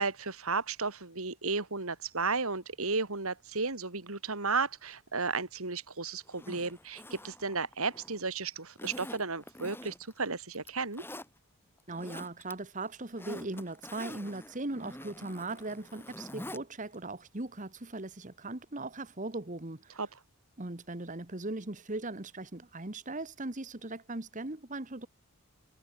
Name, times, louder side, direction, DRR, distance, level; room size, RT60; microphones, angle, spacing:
voice 1, 0.0-11.0 20.0-20.1, right 4 dB, 70° right, 2.9 m, -33 dB
Zipper (clothing), 6.3-8.2 8.8-10.2 10.5-11.3 11.8-12.5 12.8-16.6 16.9-17.0, left 1 dB, 10° left, 5.8 m, -46 dB
voice 2, 11.9-20.0 20.6-25.1, right 2 dB, 35° right, 1.4 m, -39 dB
head